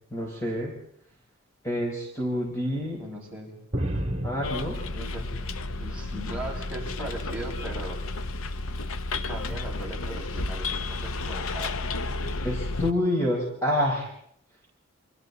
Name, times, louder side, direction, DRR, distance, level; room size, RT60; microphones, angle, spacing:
voice 1, 0.1-0.7 1.6-3.0 4.2-4.8 12.4-14.1, left 1 dB, 15° left, -2 dB, 5.0 m, -27 dB
voice 2, 3.0-3.5 4.7-5.3 5.7-8.0 9.2-11.9, right 1 dB, 5° right, -5 dB, 7.0 m, -38 dB
sound 1, 3.7-6.0 6.3-7.3 8.1-8.5 9.5-9.7, right 1 dB, 30° right, 3.2 m, -34 dB
Bus, 4.4-12.9, left 2 dB, 80° left, 0.9 m, -32 dB
28.5 x 27.0 x 4.2 m, 0.70 s
head